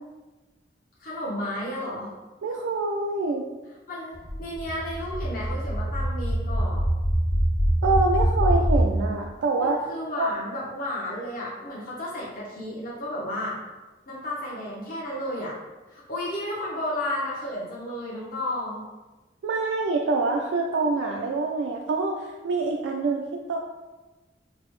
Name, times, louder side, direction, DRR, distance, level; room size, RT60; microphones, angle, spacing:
voice 1, 1.0-2.1 3.9-6.8 9.6-13.6 14.1-15.5 15.9-18.8, left 1 dB, 50° left, -6 dB, 0.7 m, -32 dB
voice 2, 2.4-3.5 7.8-9.9 10.2-10.3 19.4-23.6, right 3 dB, 85° right, 1 dB, 0.3 m, -25 dB
sound 1, 4.1-8.9, equal, 10° right, 0.5 m, -24 dB
4.9 x 2.0 x 3.1 m, 1.2 s
head